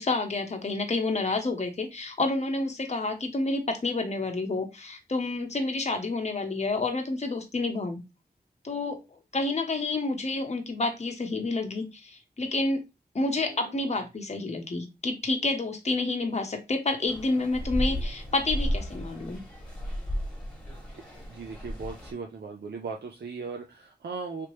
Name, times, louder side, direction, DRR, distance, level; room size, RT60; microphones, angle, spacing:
voice 1, 0.0-8.0 8.6-9.0 9.3-12.8 13.1-19.4, left 2 dB, 40° left, 3 dB, 0.8 m, -29 dB
voice 2, 13.4-14.0 21.3-24.5, right 4 dB, 80° right, 2 dB, 0.6 m, -38 dB
sound 1, 17.1-22.1, equal, 5° left, 1.6 m, -33 dB
3.3 x 2.9 x 3.1 m, 0.24 s
wide cardioid pair, 60°, 17 cm